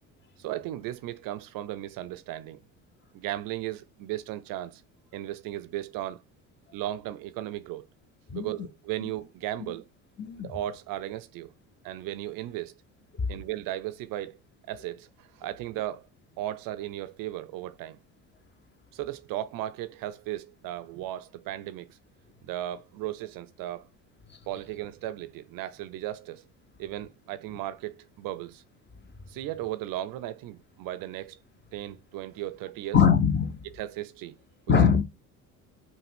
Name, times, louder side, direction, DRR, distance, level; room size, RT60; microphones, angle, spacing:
voice 1, 0.4-2.6 3.1-4.8 5.1-6.2 6.7-7.9 8.3-9.9 10.4-11.5 11.8-12.8 13.3-14.4 14.7-16.1 16.4-18.0 18.9-22.0 22.4-23.9 24.5-26.4 26.8-28.6 29.3-31.4 31.7-33.0 33.6-34.4, right 14 dB, 55° right, 0.5 m, -36 dB
voice 2, 10.2-10.5 13.1-13.3 32.9-33.7 34.7-35.0, left 6 dB, 25° left, 0.9 m, -22 dB
5.6 x 2.4 x 3.5 m
hypercardioid pair, 60°, 42 cm